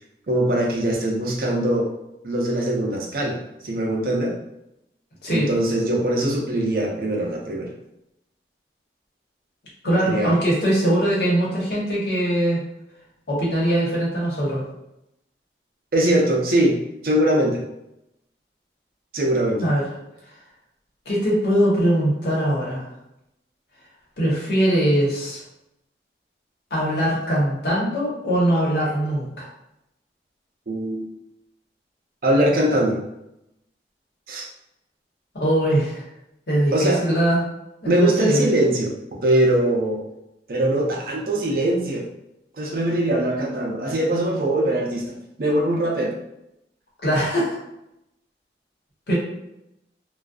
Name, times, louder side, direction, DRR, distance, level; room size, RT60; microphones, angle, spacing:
voice 1, 0.3-1.9 2.2-3.4 3.6-4.3 5.3-7.7 10.1-10.4 15.9-16.8 17.0-17.6 19.1-19.7 30.7-31.0 32.2-33.0 34.3-34.4 36.7-37.0 37.9-38.9 39.2-40.1 40.5-42.1 42.6-46.1, right 1 dB, 55° right, -1 dB, 0.5 m, -21 dB
voice 2, 9.8-12.6 13.3-14.6 19.6-19.8 21.1-22.8 24.2-25.4 26.7-29.5 35.3-36.0 36.5-37.4 37.8-38.4 47.0-47.6 49.1-49.2, right 1 dB, 70° left, -6 dB, 1.0 m, -21 dB
2.5 x 2.2 x 2.3 m, 0.85 s
head